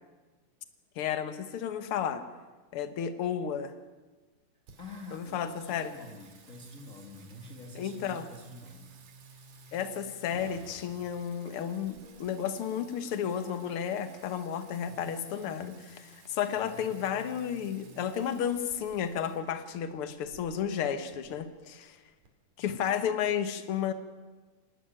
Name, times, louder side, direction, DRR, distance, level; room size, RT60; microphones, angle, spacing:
voice 1, 1.0-2.2 2.7-3.7 5.1-5.9 7.8-8.3 9.7-22.0 22.6-23.9, left 8 dB, 55° left, 10 dB, 2.0 m, -32 dB
Singing, 4.7-22.3, right 3 dB, 75° right, 3.8 m, -54 dB
voice 2, 4.8-8.9, left 3 dB, 30° left, 1 dB, 1.9 m, -48 dB
sound 1, 10.3-13.5, right 3 dB, 60° right, 3.4 m, -55 dB
27.5 x 12.0 x 9.1 m, 1.3 s
omnidirectional pair, 3.4 m